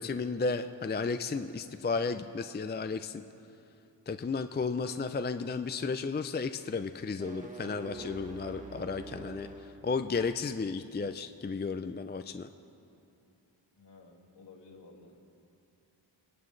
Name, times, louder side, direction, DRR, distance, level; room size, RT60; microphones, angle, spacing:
voice 1, 0.0-3.2 4.1-12.5, left 4 dB, 25° left, 9 dB, 0.4 m, -33 dB
sound 1, 7.0-9.8, right 2 dB, 15° right, 1.3 m, -45 dB
voice 2, 13.8-15.2, left 3 dB, 65° left, -3 dB, 2.4 m, -54 dB
29.0 x 11.0 x 3.3 m, 2.7 s
wide cardioid pair, 65°, 45 cm